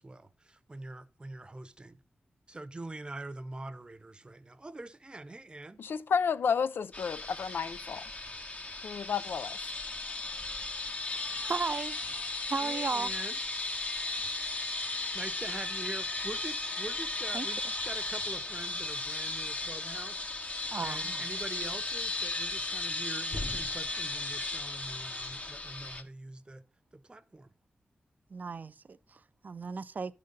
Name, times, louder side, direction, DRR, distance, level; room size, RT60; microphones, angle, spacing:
voice 1, 0.0-2.0 2.5-5.8 12.6-13.4 15.1-20.2 20.8-26.6 26.9-27.5, right 2 dB, 25° right, 0.7 m, -44 dB
voice 2, 5.8-8.0 8.8-9.6, left 6 dB, 85° left, 0.4 m, -31 dB
sound 1, 6.9-26.0, left 2 dB, 40° left, 1.1 m, -36 dB
voice 3, 11.1-11.9 12.4-13.1 17.3-17.5 20.7-21.2 28.3-30.1, right 4 dB, 55° right, 0.4 m, -35 dB
11.5 x 3.9 x 5.2 m
cardioid pair, 70°, 4 cm